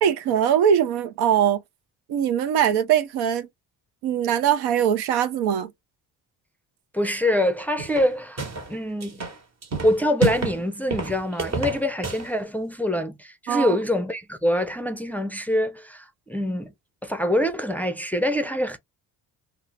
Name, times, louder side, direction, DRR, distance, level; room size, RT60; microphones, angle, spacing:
voice 1, 0.0-1.6 2.1-3.5 4.0-5.7 13.5-13.8, right 9 dB, 80° right, 0.6 m, -21 dB
voice 2, 6.9-9.2 9.8-16.7 17.0-18.8, left 1 dB, 5° left, 0.4 m, -25 dB
sound 1, 7.8-8.7 9.0-10.6 10.9-12.3, right 4 dB, 40° right, 1.2 m, -29 dB
2.4 x 2.0 x 3.2 m
supercardioid pair, 70°, 39 cm